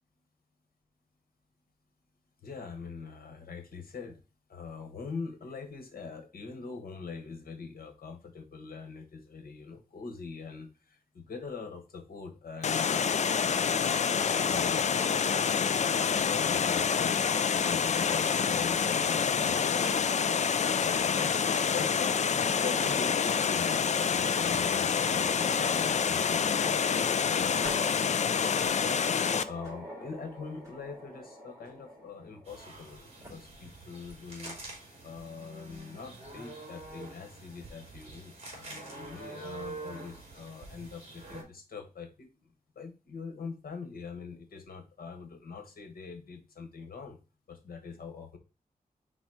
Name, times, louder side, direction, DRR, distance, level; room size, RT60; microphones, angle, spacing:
voice 1, 2.4-4.2 4.5-15.7 16.0-20.1 20.8-21.3 21.7-29.0 29.4-34.6 35.0-42.3 42.7-47.2 47.5-48.4, left 5 dB, 85° left, 6 dB, 1.4 m, -43 dB
Water, 12.6-29.4, left 6 dB, 50° left, 0.4 m, -27 dB
sound 1, 22.1-32.9 33.2-33.3 34.1-34.2 34.7-34.8 36.1-36.4, equal, 20° right, 3.6 m, -47 dB
sound 2, 32.5-41.4, right 2 dB, 45° right, 3.2 m, -46 dB
4.8 x 4.1 x 4.7 m, 0.31 s
wide cardioid pair, 150°, 15 cm